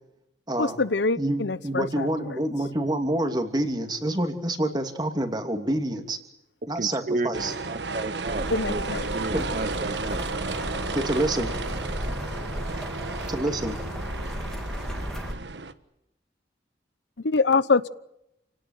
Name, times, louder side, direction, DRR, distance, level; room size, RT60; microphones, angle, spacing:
voice 1, 0.6-2.4 8.5-9.1 17.2-17.9, left 4 dB, 85° left, 17 dB, 0.9 m, -24 dB
voice 2, 1.2-6.2 6.7-7.5 9.3-9.5 10.9-11.5 13.3-13.8, right 1 dB, 25° right, 6 dB, 2.8 m, -27 dB
voice 3, 6.8-10.2, right 2 dB, 45° right, 13 dB, 1.0 m, -32 dB
sound 1, 7.3-15.7, right 3 dB, 80° right, 1.4 m, -33 dB
sound 2, 8.3-15.4, equal, 5° left, 2.6 m, -34 dB
29.0 x 18.0 x 9.1 m, 0.83 s
head